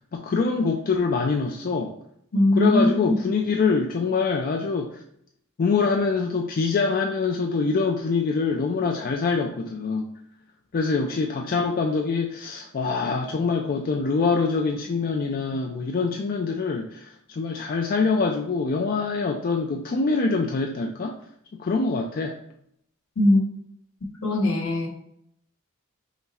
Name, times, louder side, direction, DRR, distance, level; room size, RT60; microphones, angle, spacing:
voice 1, 0.1-1.9 2.6-5.0 5.6-10.1 10.7-21.2 21.5-22.4, left 4 dB, 40° left, 3 dB, 0.3 m, -24 dB
voice 2, 2.3-3.1 23.2-23.4 24.2-24.9, left 1 dB, 70° left, 1 dB, 1.1 m, -20 dB
5.7 x 2.0 x 4.2 m, 0.71 s
head